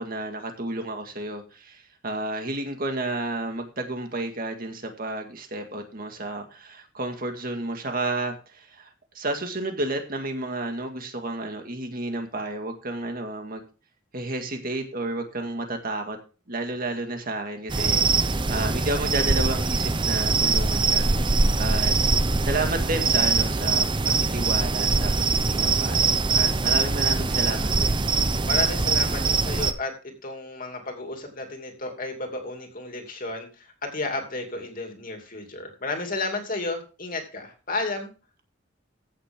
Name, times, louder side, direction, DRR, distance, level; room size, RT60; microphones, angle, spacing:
voice 1, 0.0-13.6 14.1-16.2 16.5-21.1 21.6-21.9 22.4-28.0, right 2 dB, 45° right, 5 dB, 1.9 m, -31 dB
sound 1, 17.7-29.7, right 4 dB, 25° right, 0.7 m, -23 dB
voice 2, 28.4-38.1, left 2 dB, 45° left, 3 dB, 2.7 m, -32 dB
15.0 x 7.5 x 3.7 m, 0.34 s
head